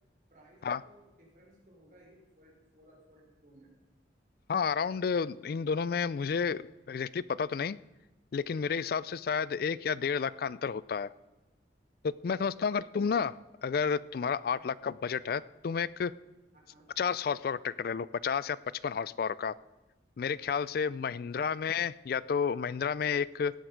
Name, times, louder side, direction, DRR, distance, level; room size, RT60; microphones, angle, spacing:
voice 1, 0.3-3.7 12.4-12.8 14.5-14.6 16.7-16.9 21.3-21.5, right 1 dB, 45° right, -2 dB, 4.0 m, -59 dB
voice 2, 4.5-7.8 8.3-11.1 12.0-13.3 13.6-16.1 17.0-18.6 18.8-19.5 20.2-23.5, left 6 dB, 55° left, 19 dB, 0.3 m, -31 dB
16.5 x 7.8 x 5.1 m, 1.1 s
head